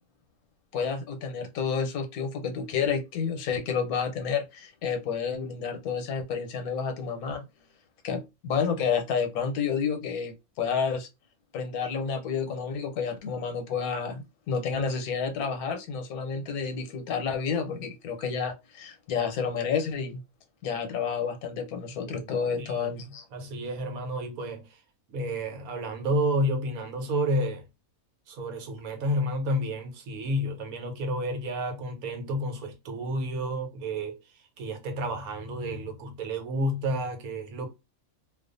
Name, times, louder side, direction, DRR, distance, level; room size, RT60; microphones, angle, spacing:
voice 1, 0.7-7.5 8.0-11.1 11.5-20.2 20.6-23.2, left 6 dB, 90° left, 1.1 m, -30 dB
voice 2, 22.6-23.0 23.3-24.8 25.1-27.7 28.3-37.7, equal, 80° right, 1.2 m, -30 dB
2.4 x 2.3 x 2.4 m
omnidirectional pair, 1.5 m